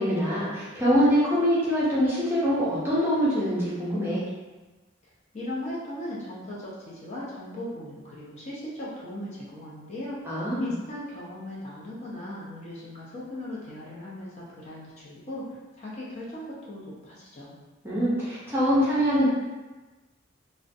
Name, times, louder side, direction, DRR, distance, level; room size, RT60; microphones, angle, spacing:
voice 1, 0.0-4.3 10.2-10.8 17.8-19.3, equal, 10° right, -9 dB, 0.5 m, -24 dB
voice 2, 5.3-10.2 10.6-17.5, left 1 dB, 35° left, -7 dB, 0.6 m, -38 dB
2.4 x 2.1 x 2.5 m, 1.2 s
head